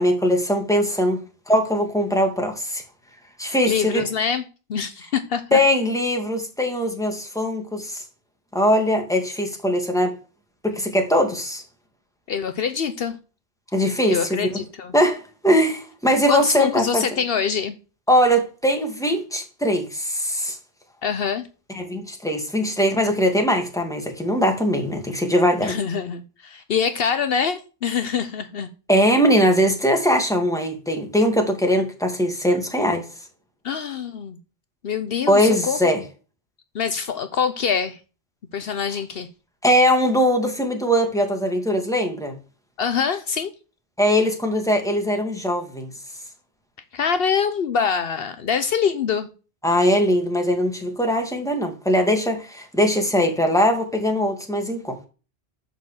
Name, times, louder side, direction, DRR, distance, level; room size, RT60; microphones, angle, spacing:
voice 1, 0.0-2.8 3.4-4.0 5.5-8.0 8.5-10.1 10.6-11.6 13.7-14.6 14.9-17.1 18.1-20.6 21.7-25.8 28.9-33.1 35.3-36.0 39.6-42.4 44.0-45.9 49.6-55.0, equal, 5° left, 1.9 m, -21 dB
voice 2, 3.7-4.4 4.7-5.6 12.3-13.2 14.1-14.9 16.3-17.8 21.0-21.4 25.6-28.7 33.6-34.4 34.8-35.8 36.7-38.0 38.5-39.3 42.8-43.5 46.9-49.3, left 6 dB, 70° left, 1.0 m, -24 dB
10.5 x 4.5 x 7.2 m
omnidirectional pair, 1.0 m